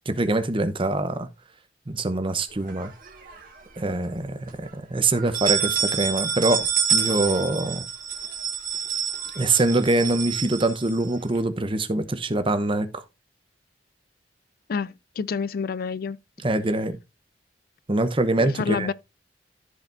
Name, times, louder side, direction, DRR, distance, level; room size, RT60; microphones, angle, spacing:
voice 1, 0.1-1.3 1.9-2.9 3.8-7.8 9.4-13.0 16.4-17.0 17.9-18.9, right 2 dB, 30° right, 0.8 m, -24 dB
sound 1, 2.7-3.6 4.0-4.1 4.5-4.6 5.1-11.4, right 8 dB, 50° right, 1.8 m, -27 dB
voice 2, 14.7-16.2 18.4-18.9, left 5 dB, 55° left, 0.4 m, -28 dB
14.0 x 4.9 x 2.5 m
head